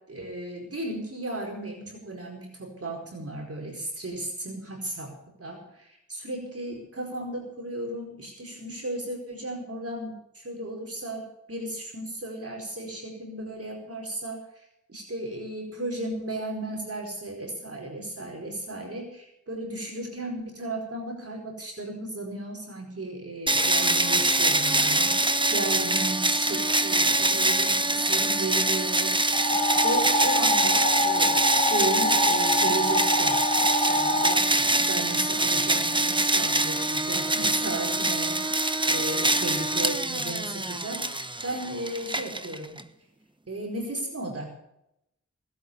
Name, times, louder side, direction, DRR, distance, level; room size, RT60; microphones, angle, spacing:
voice 1, 0.1-29.2 29.8-33.4 33.7-42.8 43.5-44.6, right 1 dB, 50° right, 1 dB, 4.7 m, -35 dB
sound 1, 23.5-42.8, right 2 dB, 15° right, 1.2 m, -24 dB
sound 2, 29.3-34.3, left 1 dB, 20° left, 4.1 m, -25 dB
19.5 x 8.5 x 6.9 m, 0.81 s
cardioid pair, 50°, 31 cm